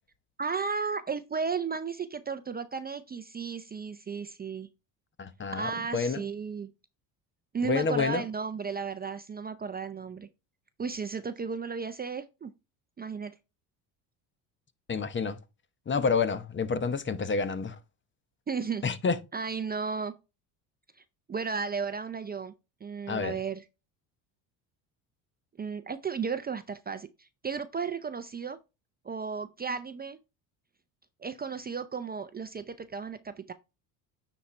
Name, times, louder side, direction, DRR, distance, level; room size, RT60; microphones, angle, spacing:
voice 1, 0.4-4.7 5.5-6.7 7.5-10.3 10.8-12.5 13.0-13.3 18.5-18.8 19.3-20.2 21.3-22.5 22.8-23.6 25.6-28.6 29.0-30.2 31.2-33.5, right 5 dB, 20° right, 0.6 m, -34 dB
voice 2, 5.2-6.2 7.6-8.2 14.9-15.4 15.9-17.8 18.8-19.2 23.1-23.4, left 5 dB, 25° left, 0.9 m, -29 dB
9.3 x 4.3 x 3.2 m
supercardioid pair, 95°, 45 cm